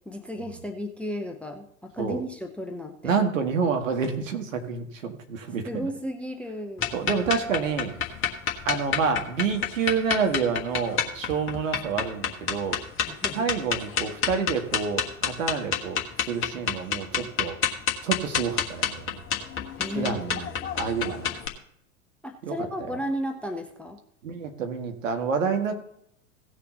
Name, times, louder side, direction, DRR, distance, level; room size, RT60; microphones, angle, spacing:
voice 1, 0.1-3.1 5.7-6.9 13.0-13.5 19.8-20.2 22.2-24.0, equal, 5° left, 5 dB, 0.7 m, -34 dB
voice 2, 3.0-5.9 6.9-7.9 8.7-12.8 13.4-17.6 18.0-19.2 20.0-20.5 20.7-21.3 22.4-22.5 24.2-25.8, right 5 dB, 65° right, 4 dB, 1.9 m, -28 dB
sound 1, 6.8-21.5, left 7 dB, 30° left, 1.4 m, -29 dB
16.5 x 6.6 x 4.0 m, 0.71 s
figure-of-eight pair, 90°, 42 cm